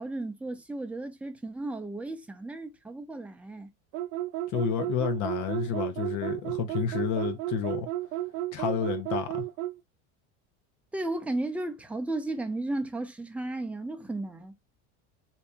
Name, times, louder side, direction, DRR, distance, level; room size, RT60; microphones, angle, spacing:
voice 1, 0.0-3.7 10.9-14.5, right 2 dB, 5° right, 0.6 m, -34 dB
sound 1, 3.9-9.8, right 14 dB, 80° right, 0.6 m, -32 dB
voice 2, 4.5-7.9 8.5-9.4, left 8 dB, 55° left, 0.8 m, -30 dB
2.8 x 2.7 x 3.5 m
supercardioid pair, 110°, 36 cm